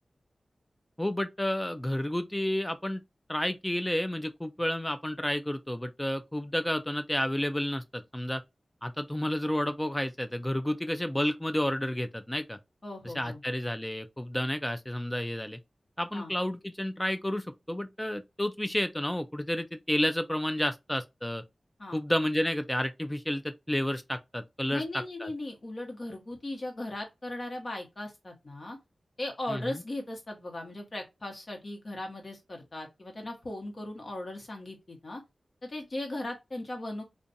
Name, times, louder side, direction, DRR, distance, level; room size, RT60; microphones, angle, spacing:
voice 1, 1.0-3.0 3.3-8.4 8.8-12.6 13.0-15.6 16.0-21.4 21.9-25.3 29.5-29.8, left 1 dB, 10° left, 0.3 m, -31 dB
voice 2, 12.8-13.4 16.1-16.3 21.8-22.0 24.7-28.8 29.2-35.2 35.6-37.0, left 1 dB, 50° left, 1.0 m, -38 dB
2.5 x 2.2 x 2.5 m
wide cardioid pair, 70°, 0 cm